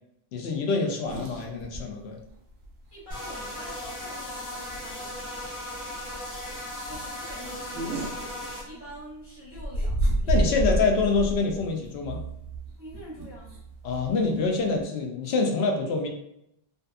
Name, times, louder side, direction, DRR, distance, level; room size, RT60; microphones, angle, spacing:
voice 1, 0.3-2.2 10.3-12.2 13.8-16.1, left 4 dB, 75° left, 2 dB, 0.8 m, -26 dB
sound 1, 1.0-1.8 2.2-2.3 2.6-2.7 3.9-4.2 4.5-4.8 5.2-5.3 5.6-5.7 6.1-6.3 6.8-9.1 9.5-14.8, right 1 dB, 65° right, 0.7 m, -30 dB
voice 2, 2.9-5.5 6.8-10.4 12.8-13.6, equal, 30° right, -8 dB, 0.6 m, -46 dB
sound 2, 3.1-8.6, left 1 dB, 25° left, 0.6 m, -37 dB
2.6 x 2.3 x 2.3 m, 0.79 s
omnidirectional pair, 1.1 m